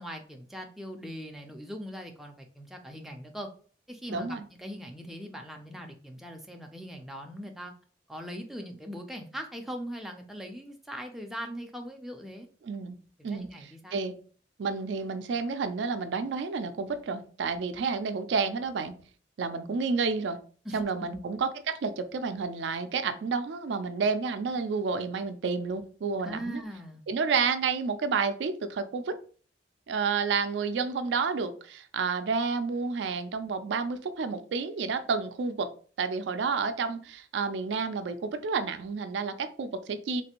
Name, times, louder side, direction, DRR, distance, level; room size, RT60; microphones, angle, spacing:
voice 1, 0.0-3.5 3.9-7.7 8.1-12.5 13.2-14.0 20.6-21.2 26.2-27.0, equal, ahead, 2 dB, 0.4 m, -40 dB
voice 2, 4.1-4.4 12.6-13.0 13.2-13.5 13.9-14.1 14.6-18.9 19.4-20.4 20.7-26.6 27.1-29.2 29.9-35.7 36.0-40.2, right 5 dB, 70° right, 9 dB, 0.4 m, -30 dB
3.2 x 2.5 x 2.9 m, 0.42 s
head